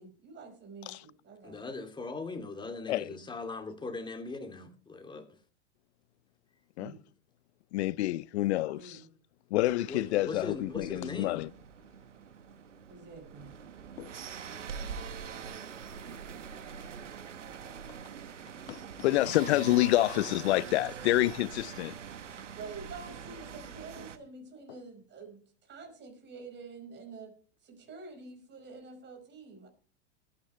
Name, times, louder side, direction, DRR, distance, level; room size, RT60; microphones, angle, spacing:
voice 1, 0.0-1.6 6.8-7.0 8.7-9.1 12.9-13.5 14.8-15.0 20.9-21.2 22.6-27.3 27.6-29.7, right 4 dB, 30° right, 5.3 m, -48 dB
voice 2, 1.4-5.3 9.9-11.4, left 3 dB, 15° left, 2.7 m, -40 dB
voice 3, 7.7-9.0 9.5-11.5 14.0-14.1 18.7-21.9, left 17 dB, 65° left, 0.5 m, -28 dB
sound 1, 9.6-24.2, right 7 dB, 90° right, 1.3 m, -44 dB
21.5 x 9.6 x 3.3 m
hypercardioid pair, 105°, 35 cm